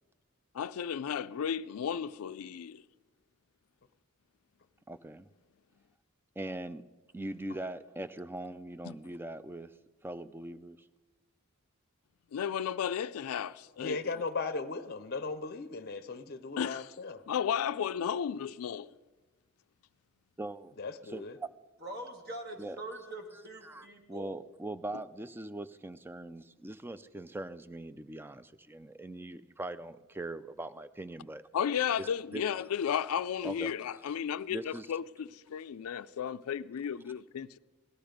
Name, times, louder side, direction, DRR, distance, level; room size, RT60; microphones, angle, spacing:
voice 1, 0.5-2.8 8.8-8.9 12.3-14.0 16.6-16.9 17.3-18.9 31.5-37.6, left 8 dB, 85° left, 0.4 m, -34 dB
voice 2, 4.9-5.3 6.4-6.8 7.1-9.7 10.0-10.9 20.4-20.7 21.0-21.5 22.6-22.8 23.6-31.4 32.0-32.4 33.4-33.7 34.5-34.9, right 1 dB, 10° right, 0.4 m, -41 dB
voice 3, 13.8-17.2 20.8-21.3, left 4 dB, 45° left, 0.6 m, -37 dB
voice 4, 21.8-24.3, right 1 dB, 50° right, 2.1 m, -43 dB
17.5 x 12.0 x 5.1 m
head